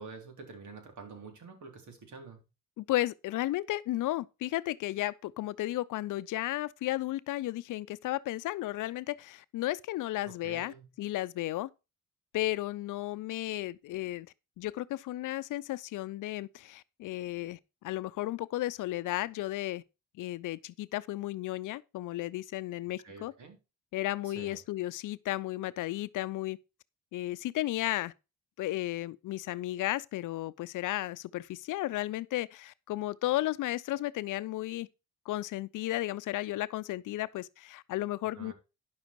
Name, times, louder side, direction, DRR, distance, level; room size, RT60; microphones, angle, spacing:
voice 1, 0.0-2.4 10.3-10.9 23.0-23.6 24.2-24.6 38.4-38.5, right 4 dB, 65° right, 3.9 m, -47 dB
voice 2, 2.8-11.7 12.3-14.3 14.6-17.6 17.8-19.8 20.2-23.3 23.9-26.6 27.1-28.1 28.6-34.9 35.3-38.5, left 16 dB, 75° left, 0.6 m, -34 dB
10.5 x 6.5 x 4.6 m
supercardioid pair, 65°, 31 cm